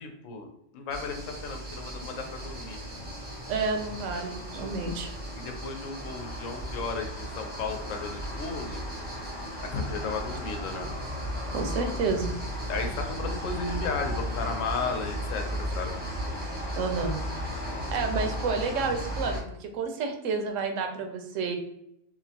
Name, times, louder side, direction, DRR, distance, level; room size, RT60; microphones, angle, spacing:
voice 1, 0.0-2.8 4.1-4.2 5.4-8.8 9.6-10.9 12.7-16.0, left 4 dB, 85° left, 4 dB, 1.0 m, -34 dB
sound 1, 0.9-19.4, equal, 10° right, 0.5 m, -35 dB
voice 2, 3.5-5.1 11.5-12.3 16.7-17.2 17.9-21.6, right 4 dB, 80° right, 4 dB, 0.9 m, -30 dB
2.9 x 2.1 x 2.7 m, 0.78 s
omnidirectional pair, 1.3 m